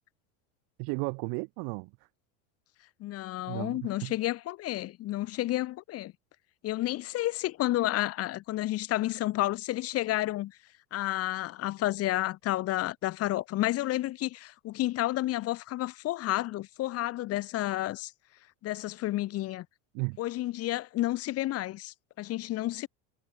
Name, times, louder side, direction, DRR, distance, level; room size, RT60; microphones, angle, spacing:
voice 1, 0.8-1.9 3.5-4.1 19.9-20.2, right 36 dB, 65° right, 4.4 m, -34 dB
voice 2, 3.0-6.1 6.6-10.6 10.9-18.1 18.6-19.7 20.2-22.9, left 16 dB, 40° left, 1.2 m, -31 dB
supercardioid pair, 135°, 36 cm